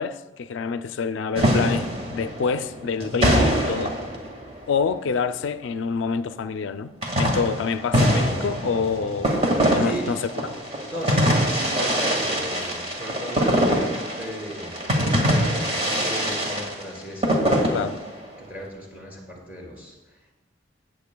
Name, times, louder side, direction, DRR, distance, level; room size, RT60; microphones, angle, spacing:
voice 1, 0.0-3.9 4.7-6.9 7.2-9.4 9.7-10.2 12.6-12.7 17.7-18.0, left 5 dB, 75° left, 0.4 m, -26 dB
sound 1, 1.4-4.8 7.0-18.3, equal, 35° right, 1.8 m, -23 dB
voice 2, 9.8-10.2 10.9-14.9 15.5-17.8 18.5-20.3, equal, 10° right, 3.4 m, -36 dB
16.5 x 7.9 x 2.2 m
head